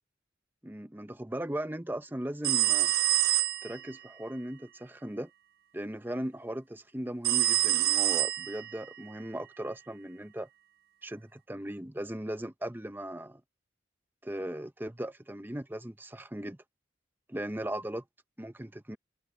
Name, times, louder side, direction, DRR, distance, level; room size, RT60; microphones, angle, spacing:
voice 1, 0.6-2.9 3.6-5.3 5.7-10.5 11.0-13.4 14.2-16.6 17.3-18.0 18.4-19.0, right 1 dB, 10° right, 0.8 m, -38 dB
sound 1, 2.4-3.8 7.2-8.8, right 15 dB, 50° right, 0.5 m, -26 dB
head